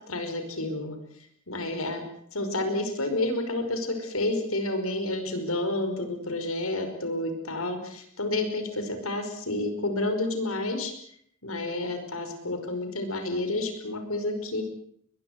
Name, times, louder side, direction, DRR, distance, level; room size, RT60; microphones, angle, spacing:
voice 1, 0.1-2.0 2.3-10.9 11.4-14.6, left 2 dB, 80° left, 7 dB, 5.3 m, -30 dB
22.0 x 21.5 x 7.9 m, 0.64 s
head